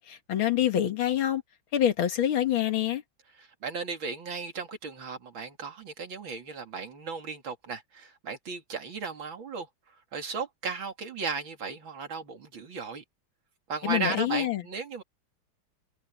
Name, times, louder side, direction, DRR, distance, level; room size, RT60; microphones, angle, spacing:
voice 1, 0.0-1.4 1.7-3.0 13.8-14.6, left 11 dB, 90° left, 2.4 m, -26 dB
voice 2, 3.4-9.7 10.1-13.0 13.7-15.0, right 5 dB, 75° right, 3.3 m, -35 dB
omnidirectional pair, 2.2 m